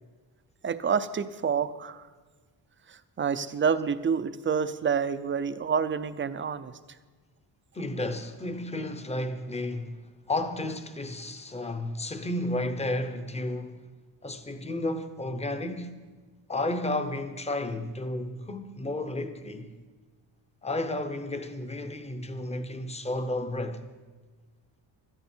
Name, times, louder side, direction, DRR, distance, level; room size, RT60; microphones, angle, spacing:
voice 1, 0.6-2.1 2.9-6.7, right 6 dB, 25° right, 0.5 m, -28 dB
voice 2, 7.7-13.8 14.2-16.0 16.5-19.7 20.6-23.8, left 1 dB, 15° left, 0.8 m, -32 dB
16.5 x 13.0 x 4.5 m
cardioid pair, 160°, 46 cm